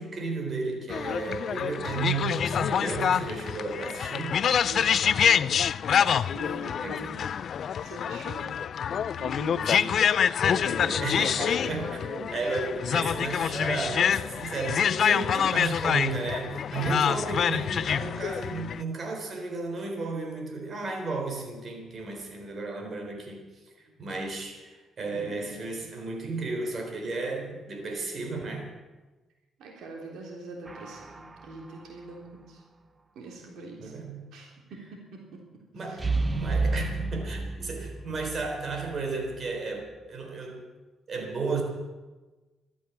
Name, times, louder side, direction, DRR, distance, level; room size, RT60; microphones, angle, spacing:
voice 1, 0.0-4.4 6.8-7.0 9.5-10.2 10.4-23.4 24.0-28.7 33.8-34.2 35.7-40.6 41.1-41.6, right 3 dB, 45° right, 2 dB, 3.9 m, -33 dB
sound 1, 0.9-18.8, left 8 dB, 60° left, 0.4 m, -26 dB
voice 2, 4.6-5.7 6.3-7.4 7.8-8.5 9.2-9.6 10.4-10.8 23.9-24.0 29.6-32.6 33.2-33.9 34.3-35.2 35.8-36.1, right 2 dB, 80° right, 0 dB, 3.3 m, -43 dB
sound 2, 30.7-31.5 36.0-39.0 39.2-39.4, right 3 dB, 20° right, 0.9 m, -31 dB
13.5 x 13.0 x 7.2 m, 1.2 s
cardioid pair, 90°, 0 cm